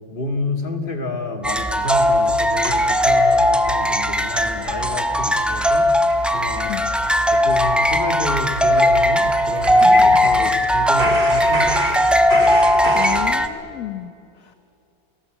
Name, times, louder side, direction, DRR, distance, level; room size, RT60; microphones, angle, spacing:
voice 1, 0.1-5.9 6.3-6.8 7.3-11.9, left 1 dB, 30° left, 5 dB, 2.4 m, -29 dB
sound 1, 1.4-13.5, left 1 dB, ahead, 0.7 m, -18 dB
sound 2, 2.6-3.8 4.2-4.3 4.6-4.8 5.1-5.2 5.6-5.8 6.1-6.3 6.5-6.7 7.0-10.7 11.0-13.3, right 1 dB, 60° right, 3.7 m, -29 dB
voice 2, 12.9-14.5, left 11 dB, 55° left, 9 dB, 1.3 m, -31 dB
29.0 x 18.5 x 8.1 m, 2.6 s
omnidirectional pair, 1.8 m